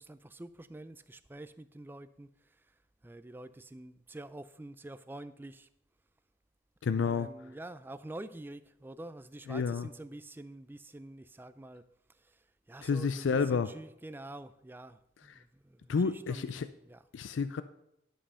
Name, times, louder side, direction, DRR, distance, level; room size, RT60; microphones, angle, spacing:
voice 1, 0.0-2.7 3.0-5.7 7.0-11.8 12.1-16.5 16.8-17.0, right 1 dB, 10° right, 13 dB, 0.3 m, -47 dB
voice 2, 6.8-7.3 9.5-9.9 12.8-13.7 15.9-16.7 17.1-17.6, left 5 dB, 85° left, 12 dB, 0.4 m, -30 dB
11.5 x 5.3 x 5.5 m, 0.81 s
head